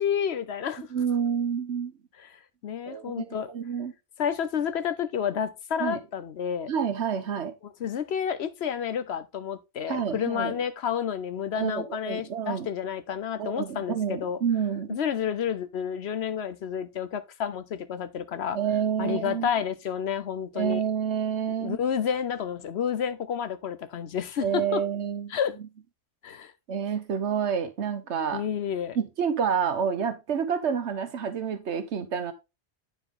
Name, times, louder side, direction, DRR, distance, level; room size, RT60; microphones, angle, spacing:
voice 1, 0.0-0.9 2.2-3.5 4.2-6.7 7.6-14.4 14.9-18.6 19.0-20.8 21.6-24.8 25.3-25.6 26.2-26.5 28.3-29.0, left 8 dB, 70° left, 1.1 m, -30 dB
voice 2, 0.9-1.9 2.9-3.9 5.8-6.0 6.7-7.5 9.9-10.5 11.5-12.7 13.4-14.9 18.5-19.5 20.5-21.8 24.4-25.4 26.7-28.4 28.9-32.3, right 7 dB, 85° right, 1.3 m, -28 dB
9.2 x 4.7 x 3.8 m
omnidirectional pair, 1.1 m